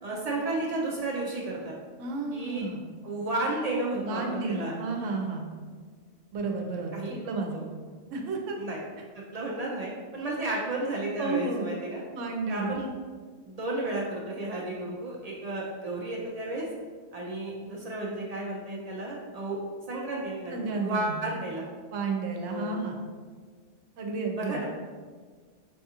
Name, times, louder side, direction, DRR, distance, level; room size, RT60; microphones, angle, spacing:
voice 1, 0.0-1.7 2.3-2.6 3.0-4.7 6.9-7.2 7.5-7.6 8.6-8.8 9.3-12.0 12.5-12.9 13.4-16.7 17.1-19.6 19.9-21.7 22.5-22.8 24.4-24.6, right 2 dB, 65° right, -3 dB, 0.4 m, -32 dB
voice 2, 2.0-2.8 4.0-5.5 6.3-7.0 7.2-7.6 8.1-8.6 11.2-11.7 12.1-12.8 20.5-21.2 21.9-22.9 24.0-24.6, right 3 dB, 90° right, 2 dB, 1.0 m, -31 dB
5.2 x 2.4 x 2.8 m, 1.5 s
omnidirectional pair, 1.3 m